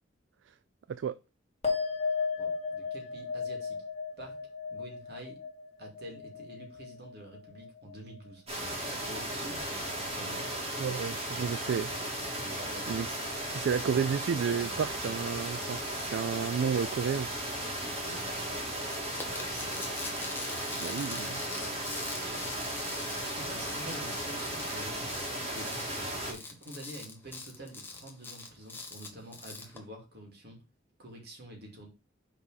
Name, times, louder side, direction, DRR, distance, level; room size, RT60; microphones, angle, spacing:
sound 1, 1.6-8.3 8.6-9.3, left 5 dB, 35° left, 2.0 m, -36 dB
voice 1, 2.4-3.8 4.2-4.4 4.7-5.4 5.8-8.4 8.9-9.7 10.0-10.6 10.8-11.2 12.4-12.9 17.9-18.3 19.5-19.8 23.2-25.7 26.2-30.6 31.0-31.9, right 1 dB, 55° right, 2.5 m, -47 dB
sound 2, 8.5-26.3, right 1 dB, 30° right, 2.4 m, -36 dB
voice 2, 10.8-11.9 12.9-13.2 13.5-17.3 20.7-21.4, right 7 dB, 75° right, 0.3 m, -31 dB
sound 3, 19.1-29.8, left 3 dB, 10° left, 1.2 m, -43 dB
6.1 x 4.2 x 5.5 m
head